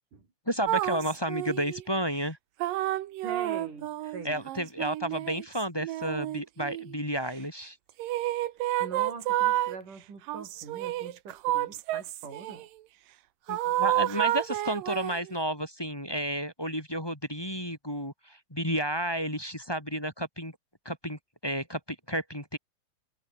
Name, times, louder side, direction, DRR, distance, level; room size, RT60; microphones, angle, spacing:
voice 1, 0.5-2.4 4.2-7.8 13.5-20.5 20.8-22.6, equal, 10° left, 2.5 m, -32 dB
sound 1, 0.7-1.8 2.6-7.0 8.0-9.8 10.3-12.6 13.5-15.3, right 14 dB, 85° right, 2.8 m, -30 dB
voice 2, 3.2-4.5 8.8-12.7, right 4 dB, 70° right, 7.2 m, -43 dB
omnidirectional pair, 3.9 m